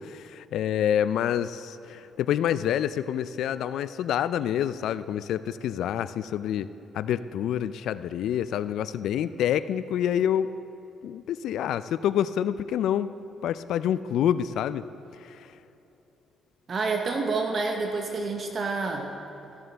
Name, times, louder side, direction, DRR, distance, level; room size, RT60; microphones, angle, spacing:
voice 1, 0.0-6.7 6.9-10.5 11.0-13.1 13.4-14.9 15.2-15.5, left 10 dB, 80° left, 14 dB, 0.3 m, -27 dB
voice 2, 16.7-19.1, right 3 dB, 50° right, 3 dB, 0.9 m, -28 dB
14.0 x 11.0 x 3.4 m, 2.9 s
cardioid pair, 90°, 0 cm